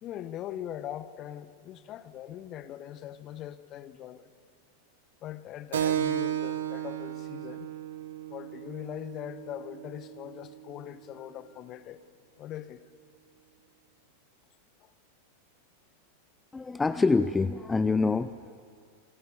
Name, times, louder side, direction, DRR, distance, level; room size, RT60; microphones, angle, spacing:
voice 1, 0.0-4.3 5.2-7.7 8.3-12.0 12.4-12.8 14.8-14.9, left 11 dB, 35° left, 1.2 m, -41 dB
Keyboard (musical), 5.7-10.8, right 10 dB, 60° right, 1.3 m, -34 dB
voice 2, 16.5-18.6, left 3 dB, 10° left, 0.6 m, -26 dB
29.5 x 23.0 x 7.3 m
figure-of-eight pair, 90°, 0 cm